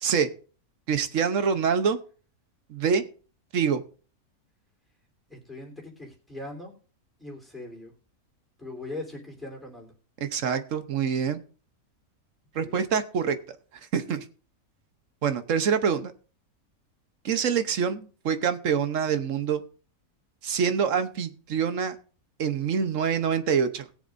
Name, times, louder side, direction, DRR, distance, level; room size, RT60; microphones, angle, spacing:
voice 1, 0.9-2.0 2.7-3.0 3.5-3.8 10.2-11.4 12.5-13.4 13.9-14.2 15.2-16.1 17.2-19.6 20.4-21.9 22.4-23.8, right 6 dB, 60° right, 10 dB, 1.2 m, -25 dB
voice 2, 5.3-6.7 7.2-7.9 8.6-9.9 12.5-12.8, left 2 dB, ahead, -1 dB, 3.5 m, -40 dB
20.5 x 7.1 x 2.6 m, 0.39 s
omnidirectional pair, 1.6 m